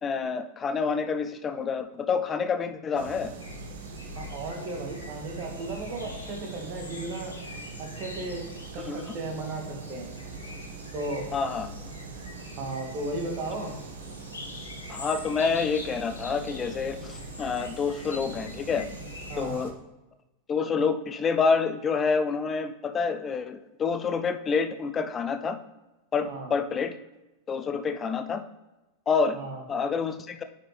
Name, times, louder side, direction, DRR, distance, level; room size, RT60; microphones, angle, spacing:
voice 1, 0.0-3.3 8.9-9.0 11.3-11.7 14.9-18.9 19.4-19.7 20.5-25.6 26.1-27.0 27.5-28.4 29.1-29.4 29.7-30.4, left 5 dB, 25° left, 10 dB, 0.5 m, -28 dB
sound 1, 3.0-19.7, right 5 dB, 55° right, 0.9 m, -42 dB
sound 2, 3.4-19.5, left 4 dB, 75° left, 1.2 m, -45 dB
voice 2, 4.1-7.3 7.8-8.4 8.7-10.1 10.9-11.3 12.6-13.7 19.3-19.7 26.2-26.5 29.3-29.6, right 2 dB, 40° right, 2 dB, 1.8 m, -35 dB
9.5 x 5.7 x 3.3 m, 1.0 s
figure-of-eight pair, 90°, 0 cm